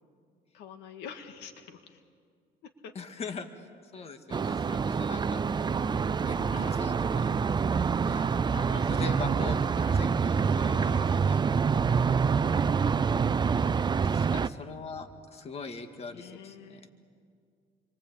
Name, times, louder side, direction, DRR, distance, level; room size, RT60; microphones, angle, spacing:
voice 1, 0.5-2.0 2.8-3.4 4.0-4.1 6.5-6.8 8.2-10.0 10.7-11.1 16.1-16.9, left 7 dB, 90° left, 7 dB, 1.9 m, -46 dB
voice 2, 3.0-5.4 6.3-7.4 8.0-8.3 8.9-9.6 9.9-11.4 13.2-16.9, left 4 dB, 40° left, 7 dB, 2.0 m, -42 dB
sound 1, 4.3-14.5, right 6 dB, 25° right, 0.6 m, -26 dB
28.5 x 23.5 x 8.6 m, 2.2 s
cardioid pair, 110°, 17 cm